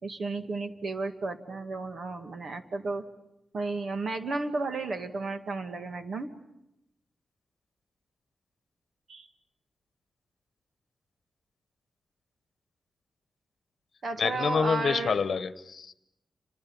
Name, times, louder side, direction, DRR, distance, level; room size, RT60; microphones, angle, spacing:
voice 1, 0.0-3.0 3.5-6.3 9.1-9.3 14.0-15.2, right 3 dB, 60° right, 7 dB, 2.2 m, -33 dB
voice 2, 14.2-15.9, left 5 dB, 60° left, 13 dB, 1.1 m, -27 dB
30.0 x 25.5 x 7.2 m, 0.86 s
wide cardioid pair, 120°, 0 cm